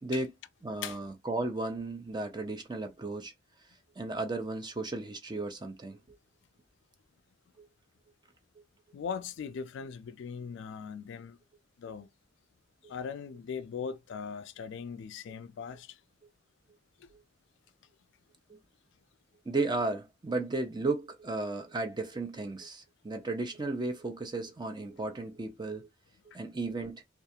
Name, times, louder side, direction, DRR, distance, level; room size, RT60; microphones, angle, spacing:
voice 1, 0.6-3.3 4.0-6.0 7.6-7.7 18.5-18.6 19.5-25.9 26.3-27.0, right 2 dB, 20° right, 0.5 m, -34 dB
voice 2, 8.9-11.4 11.8-12.1 12.9-16.0 17.0-17.1 26.3-26.4, left 6 dB, 65° left, 0.3 m, -39 dB
2.4 x 2.3 x 2.7 m
head